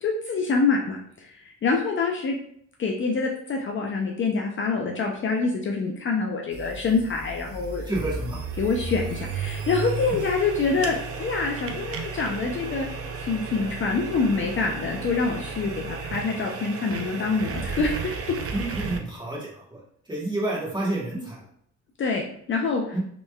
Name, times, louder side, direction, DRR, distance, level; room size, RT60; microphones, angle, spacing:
voice 1, 0.0-2.4 2.8-7.9 8.6-12.9 13.3-18.2 22.0-22.2 22.5-23.0, left 4 dB, 40° left, 0 dB, 0.5 m, -26 dB
sound 1, 6.5-19.0, right 5 dB, 50° right, 0.5 m, -34 dB
voice 2, 7.8-8.4 10.1-10.2 18.5-19.8 20.1-21.4 22.9-23.0, right 1 dB, 15° right, -5 dB, 1.3 m, -29 dB
3.1 x 3.0 x 2.3 m, 0.66 s
cardioid pair, 90°, 30 cm